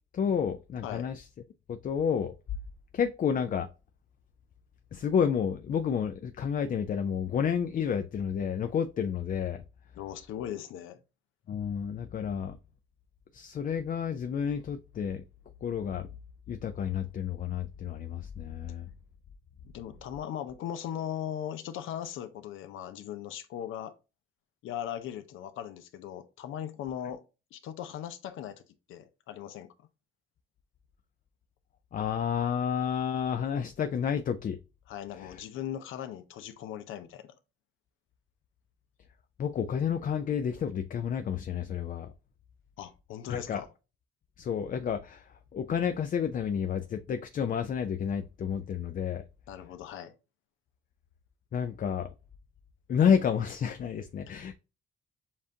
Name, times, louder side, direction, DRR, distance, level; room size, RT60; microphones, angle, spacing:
voice 1, 0.1-1.2 1.7-2.3 2.9-3.7 4.9-9.6 11.5-12.6 13.3-15.2 15.6-16.1 16.5-18.9 31.9-34.6 35.2-35.4 39.4-42.1 43.3-43.6 44.4-45.2 45.5-49.2 51.5-52.1 52.9-54.5, left 7 dB, 45° left, 0.4 m, -30 dB
voice 2, 9.9-11.0 19.7-23.9 24.6-27.2 27.5-28.6 28.9-29.7 34.9-37.3 42.8-43.7 49.5-50.1, left 10 dB, 80° left, 0.7 m, -39 dB
7.1 x 2.5 x 2.7 m
cardioid pair, 90°, 20 cm